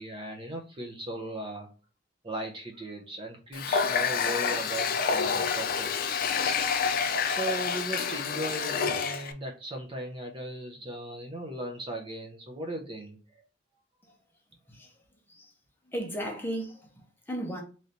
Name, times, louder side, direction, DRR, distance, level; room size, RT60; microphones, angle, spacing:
voice 1, 0.0-1.7 2.2-6.4 7.2-13.2, right 1 dB, 25° right, 0.6 m, -37 dB
Water tap faucet, 3.5-9.3, left 6 dB, 50° left, 0.4 m, -28 dB
voice 2, 15.9-17.6, right 1 dB, 10° left, 0.8 m, -36 dB
3.2 x 2.6 x 4.0 m
head